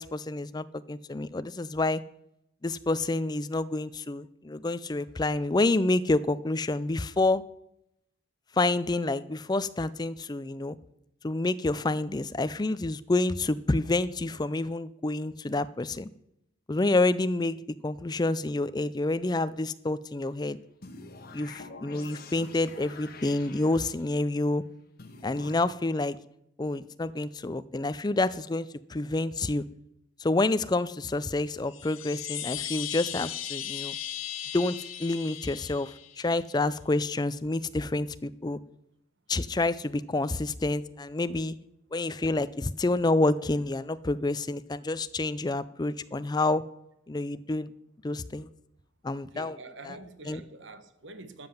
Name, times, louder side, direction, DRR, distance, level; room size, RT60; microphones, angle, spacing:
voice 1, 0.0-2.0 2.6-7.4 8.6-10.8 11.2-16.1 16.7-17.6 17.8-20.6 21.3-24.6 25.2-26.2 26.6-29.7 30.2-34.0 34.5-38.6 39.3-41.5 41.9-46.6 47.1-47.7 48.0-48.5 49.0-49.6 49.9-50.0 50.3-50.4, left 2 dB, 20° left, 0.4 m, -28 dB
sound 1, 20.8-24.3 25.0-25.5, left 3 dB, 50° left, 1.3 m, -46 dB
Chime, 31.7-36.4, left 11 dB, 90° left, 1.6 m, -37 dB
voice 2, 49.2-51.5, right 2 dB, 65° right, 1.2 m, -46 dB
13.0 x 7.7 x 7.1 m
head